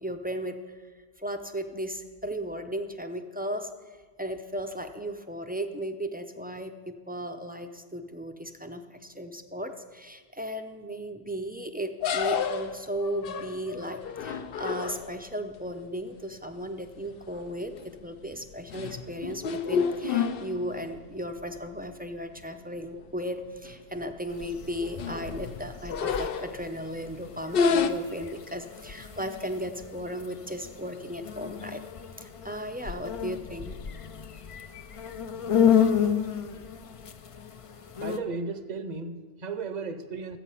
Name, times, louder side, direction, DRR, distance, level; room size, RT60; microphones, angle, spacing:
voice 1, 0.0-0.8 1.2-3.7 4.2-31.8 32.2-33.7, equal, 15° right, 6 dB, 0.4 m, -36 dB
sound 1, 12.0-15.3 17.0-17.3 17.7-18.0 18.5-21.0 21.4-21.5 21.8-21.9 22.8-22.9 23.2-23.3 23.6-24.0 24.6-26.8 27.5-27.9, left 6 dB, 70° left, 0.8 m, -30 dB
sound 2, 24.3-38.2, left 8 dB, 45° left, 0.4 m, -31 dB
voice 2, 38.0-40.4, right 4 dB, 50° right, 10 dB, 0.8 m, -35 dB
13.5 x 8.2 x 5.5 m, 1.5 s
omnidirectional pair, 1.0 m